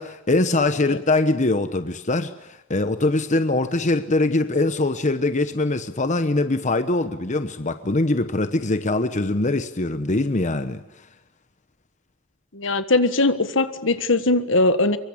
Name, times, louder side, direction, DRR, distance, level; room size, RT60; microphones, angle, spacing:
voice 1, 0.0-10.8, left 2 dB, 40° left, 1.1 m, -22 dB
voice 2, 12.5-15.0, left 2 dB, 70° left, 1.6 m, -20 dB
25.0 x 23.5 x 8.6 m
head